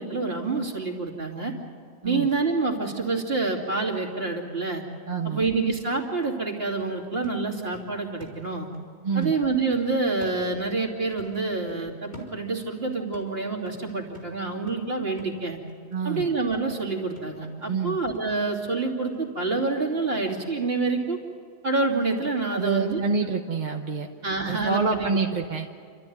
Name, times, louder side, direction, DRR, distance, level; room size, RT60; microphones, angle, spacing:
voice 1, 0.0-1.5 2.0-4.8 5.2-8.7 9.1-15.6 16.0-21.2 21.6-23.3 24.2-25.1, right 3 dB, 60° right, 0 dB, 2.9 m, -27 dB
voice 2, 5.1-5.5 9.0-9.3 15.9-16.3 17.7-18.0 22.5-24.1 24.5-25.7, right 5 dB, 45° right, 1 dB, 1.2 m, -27 dB
sound 1, 5.7-8.9 9.2-10.9 11.2-12.8 13.1-18.8 19.1-19.2, left 1 dB, 45° left, 4.1 m, -49 dB
29.5 x 13.0 x 9.3 m, 2.3 s
omnidirectional pair, 1.1 m